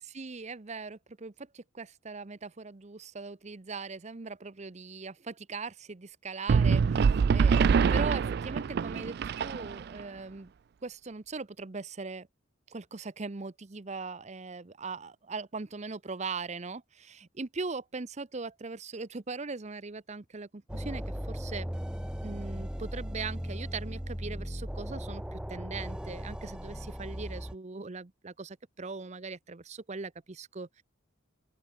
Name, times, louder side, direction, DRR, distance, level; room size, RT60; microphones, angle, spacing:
voice 1, 0.1-10.5 10.8-12.3 12.7-21.7 22.2-30.8, right 4 dB, 35° right, 0.8 m, -40 dB
sound 1, 6.5-10.0, right 5 dB, 55° right, 0.3 m, -25 dB
sound 2, 20.7-27.6, equal, 5° right, 0.6 m, -37 dB
open air
head